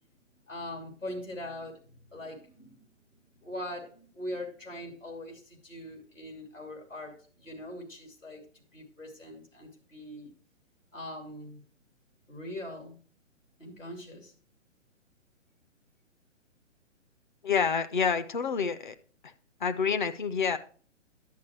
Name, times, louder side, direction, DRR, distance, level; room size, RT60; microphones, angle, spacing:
voice 1, 0.5-2.9 3.4-10.3 10.9-11.6 12.3-13.0 13.6-14.3, left 1 dB, 85° left, 1 dB, 3.0 m, -42 dB
voice 2, 17.4-18.9 19.2-19.3 19.6-20.6, left 6 dB, 40° left, 10 dB, 0.6 m, -28 dB
10.5 x 8.7 x 3.0 m, 0.42 s
figure-of-eight pair, 130°, 37 cm